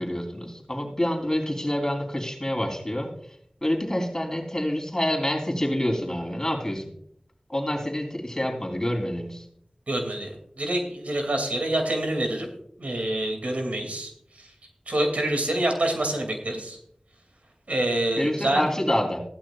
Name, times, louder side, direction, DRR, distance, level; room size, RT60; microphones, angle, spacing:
voice 1, 0.0-3.1 3.6-6.8 7.5-9.4 18.2-19.2, left 1 dB, 25° left, 1 dB, 3.5 m, -27 dB
voice 2, 9.9-12.5 12.8-14.1 14.4-14.5 14.9-16.8 17.7-18.6, right 1 dB, 85° right, 3 dB, 2.5 m, -26 dB
15.5 x 12.0 x 2.4 m, 0.67 s
wide cardioid pair, 40°, 2 cm